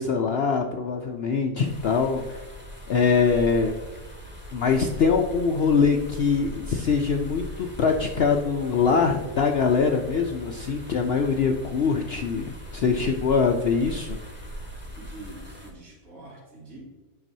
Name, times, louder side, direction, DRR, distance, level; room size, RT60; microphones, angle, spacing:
voice 1, 0.0-2.4 2.9-3.8 4.5-14.2, left 5 dB, 70° left, 4 dB, 0.6 m, -23 dB
sound 1, 1.6-15.7, equal, 5° right, 1.4 m, -40 dB
voice 2, 14.8-16.8, right 2 dB, 60° right, -5 dB, 3.0 m, -45 dB
8.9 x 6.0 x 2.7 m, 1.3 s
omnidirectional pair, 1.6 m